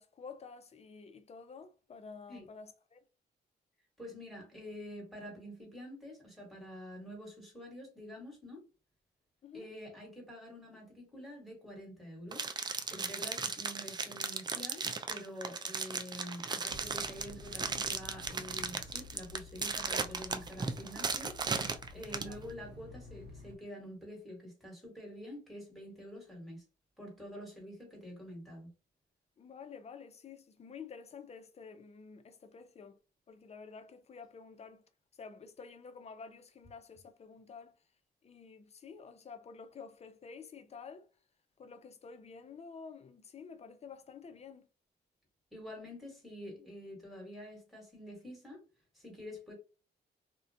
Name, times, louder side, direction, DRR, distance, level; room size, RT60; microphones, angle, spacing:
voice 1, 0.0-3.0 9.4-9.7 22.1-22.4 29.4-33.0 33.3-34.8 35.2-37.7 38.2-41.1 41.6-44.7, left 5 dB, 35° left, 0.5 m, -50 dB
voice 2, 4.0-8.6 9.5-12.5 12.9-21.3 21.9-26.6 27.0-28.7 45.5-48.6 48.9-49.5, equal, ahead, 1.4 m, -47 dB
sound 1, 12.3-22.3, right 4 dB, 25° right, 0.3 m, -36 dB
sound 2, 16.7-23.6, left 2 dB, 70° right, 0.8 m, -51 dB
2.4 x 2.1 x 2.6 m
cardioid pair, 95°, 18 cm